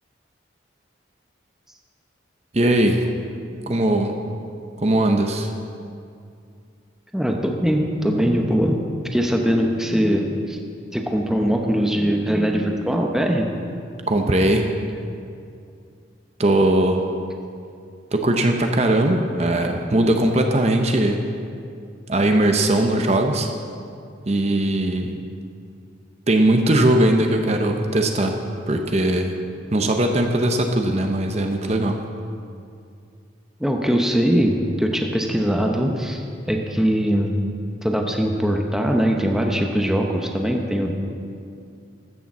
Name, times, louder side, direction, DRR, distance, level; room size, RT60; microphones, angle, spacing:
voice 1, 2.5-3.1 3.7-4.1 4.8-5.5 14.1-14.7 16.4-17.1 18.1-21.2 22.1-23.5 24.3-25.1 26.3-28.4 28.7-29.3 29.7-32.0, right 1 dB, 35° right, 4 dB, 0.7 m, -19 dB
voice 2, 7.1-8.8 9.1-10.6 10.9-13.5 33.6-37.4 37.8-40.9, equal, 5° right, 1 dB, 0.8 m, -21 dB
13.5 x 6.8 x 7.2 m, 2.4 s
head